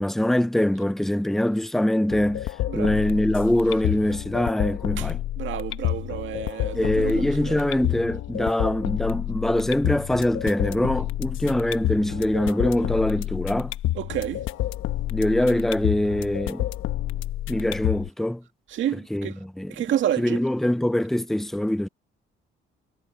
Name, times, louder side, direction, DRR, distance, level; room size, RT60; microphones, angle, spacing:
voice 1, 0.0-5.2 6.7-13.7 15.1-16.6 17.5-18.4 19.1-19.7 20.2-21.9, left 1 dB, ahead, 0.7 m, -23 dB
sound 1, 2.1-18.1, left 13 dB, 90° left, 1.1 m, -29 dB
voice 2, 5.4-7.6 14.0-14.4 18.7-19.4 19.7-20.4, right 11 dB, 75° right, 2.1 m, -29 dB
cardioid pair, 90°, 20 cm